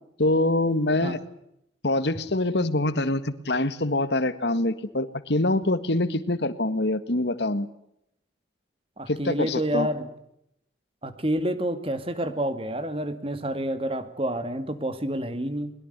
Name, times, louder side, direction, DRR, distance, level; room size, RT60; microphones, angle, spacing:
voice 1, 0.2-1.2 1.8-7.7 9.1-9.9, left 2 dB, 65° left, 13 dB, 1.8 m, -25 dB
voice 2, 9.0-10.1 11.0-15.7, right 1 dB, 30° right, 10 dB, 2.2 m, -28 dB
22.0 x 22.0 x 8.2 m, 0.78 s
head